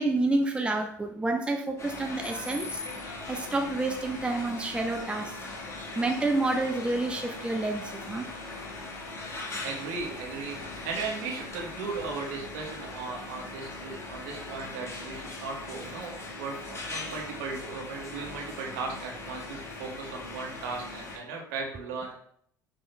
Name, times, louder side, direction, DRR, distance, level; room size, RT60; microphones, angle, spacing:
voice 1, 0.0-5.5 5.9-8.3, right 2 dB, 10° right, 3 dB, 0.8 m, -29 dB
sound 1, 1.8-21.2, left 2 dB, 25° left, 1.8 m, -40 dB
voice 2, 9.6-10.6 10.8-22.2, right 4 dB, 65° right, -1 dB, 1.9 m, -37 dB
9.2 x 3.7 x 3.3 m, 0.65 s
figure-of-eight pair, 65°, 10 cm